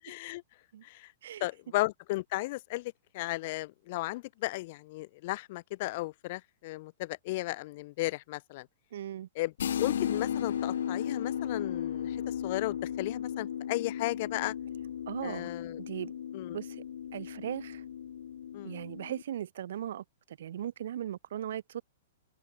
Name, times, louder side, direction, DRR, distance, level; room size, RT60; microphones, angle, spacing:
voice 1, 0.0-0.4 0.8-1.1 1.4-8.7 9.4-14.5 15.2-15.8 16.3-16.6 18.5-18.8, left 20 dB, 45° left, 1.8 m, -35 dB
voice 2, 8.9-9.3 15.1-15.5 15.8-16.1 16.5-16.8 17.1-17.8 18.6-21.8, right 10 dB, 70° right, 3.2 m, -38 dB
sound 1, 9.6-19.2, left 9 dB, 75° left, 4.4 m, -35 dB
hypercardioid pair, 150°, 0 cm